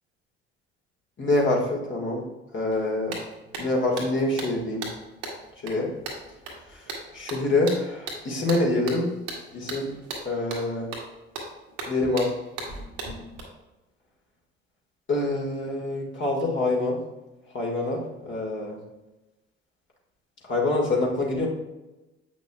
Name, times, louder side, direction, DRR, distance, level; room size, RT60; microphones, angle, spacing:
voice 1, 1.2-2.2 2.5-3.2 3.6-4.8 5.6-5.9 6.7-6.8 7.1-9.1 9.5-9.9 10.2-10.9 11.9-12.3 15.1-17.0 17.5-18.8 20.5-21.5, left 2 dB, 40° left, -1 dB, 1.8 m, -25 dB
sound 1, 2.7-2.8 3.1-13.4, right 3 dB, 70° right, 1.5 m, -37 dB
7.9 x 6.1 x 2.3 m, 1.1 s
figure-of-eight pair, 55°, 31 cm